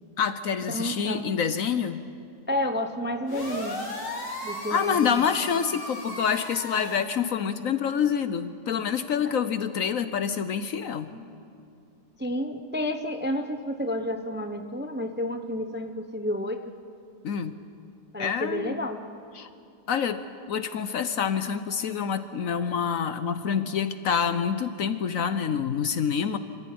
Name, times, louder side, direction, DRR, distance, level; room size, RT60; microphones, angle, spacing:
voice 1, 0.2-2.0 4.7-11.1 17.2-17.5 18.2-18.7 19.4-19.5 19.9-20.2 20.5-26.4, left 7 dB, 60° left, 12 dB, 1.1 m, -27 dB
voice 2, 0.7-1.2 2.5-3.8 4.4-5.1 11.1-11.3 12.2-16.6 18.1-19.0, left 1 dB, 10° right, 6 dB, 0.6 m, -30 dB
sound 1, 3.3-7.0, left 1 dB, 85° left, 3.6 m, -35 dB
26.0 x 14.5 x 9.4 m, 2.4 s
omnidirectional pair, 1.8 m